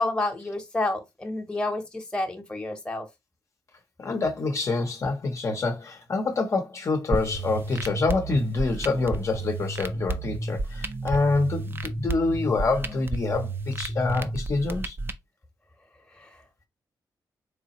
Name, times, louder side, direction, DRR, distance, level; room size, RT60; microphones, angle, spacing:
voice 1, 0.0-3.1 16.2-16.3, left 2 dB, 10° left, 0.9 m, -29 dB
voice 2, 4.0-15.0, left 3 dB, 40° left, 0.7 m, -26 dB
sound 1, 7.1-15.1, right 2 dB, 30° right, 0.5 m, -31 dB
3.9 x 3.4 x 2.9 m
wide cardioid pair, 135°, 7 cm